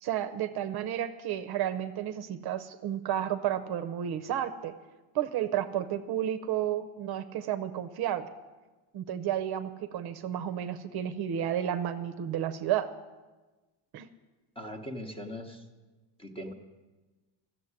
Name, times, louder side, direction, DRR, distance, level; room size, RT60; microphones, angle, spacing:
voice 1, 0.0-4.7 5.1-8.3 8.9-12.9 13.9-14.1, right 10 dB, 50° right, 10 dB, 0.7 m, -32 dB
voice 2, 14.6-15.6 16.2-16.5, equal, 10° left, 5 dB, 0.9 m, -40 dB
13.0 x 7.4 x 9.6 m, 1.2 s
cardioid pair, 165°, 49 cm